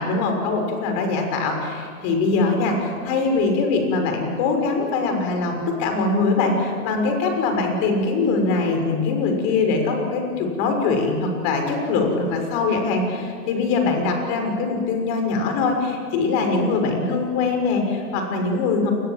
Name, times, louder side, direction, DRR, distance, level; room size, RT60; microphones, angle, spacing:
voice 1, 0.0-18.9, left 3 dB, 45° left, 4 dB, 6.4 m, -22 dB
28.0 x 22.5 x 7.6 m, 2.1 s
hypercardioid pair, 120°, 45 cm